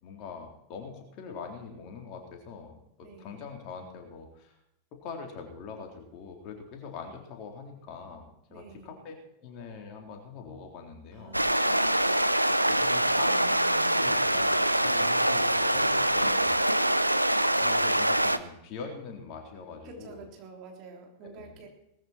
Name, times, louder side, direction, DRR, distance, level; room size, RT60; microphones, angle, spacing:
voice 1, 0.0-4.6 4.9-11.4 12.6-16.6 17.6-20.3 21.2-21.6, left 5 dB, 40° left, 2 dB, 3.7 m, -43 dB
voice 2, 3.0-3.4 8.5-9.0 11.1-12.1 19.8-21.8, right 4 dB, 40° right, 2 dB, 3.7 m, -48 dB
sound 1, 11.3-18.4, right 1 dB, 85° right, 0.6 m, -24 dB
19.0 x 13.5 x 4.5 m, 0.80 s
figure-of-eight pair, 90°, 0 cm